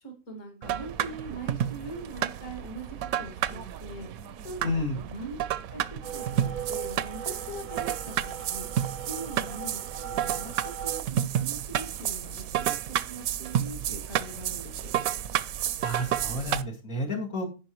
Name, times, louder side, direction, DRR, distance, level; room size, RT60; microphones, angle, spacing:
voice 1, 0.0-5.4 5.7-10.5 10.8-15.1, right 2 dB, 65° left, 2 dB, 2.4 m, -42 dB
sound 1, 0.6-16.6, right 10 dB, 85° right, 1.0 m, -31 dB
voice 2, 4.6-5.0 15.8-17.5, left 1 dB, 85° left, -2 dB, 2.6 m, -31 dB
sound 2, 6.0-11.0, right 8 dB, 50° right, 0.6 m, -39 dB
15.5 x 5.4 x 3.0 m, 0.32 s
omnidirectional pair, 1.4 m